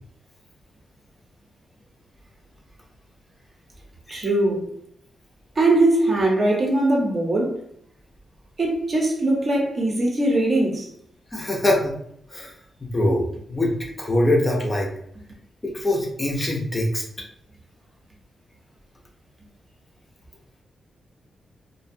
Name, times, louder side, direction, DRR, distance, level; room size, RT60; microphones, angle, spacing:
voice 1, 4.1-4.7 5.6-7.6 8.6-10.9, right 2 dB, 40° right, 0.6 m, -21 dB
voice 2, 11.3-11.9 12.3-12.5 12.8-13.7 14.0-14.9 15.6-17.0, left 1 dB, 20° left, 0.5 m, -23 dB
2.4 x 2.1 x 2.6 m
wide cardioid pair, 130°, 0 cm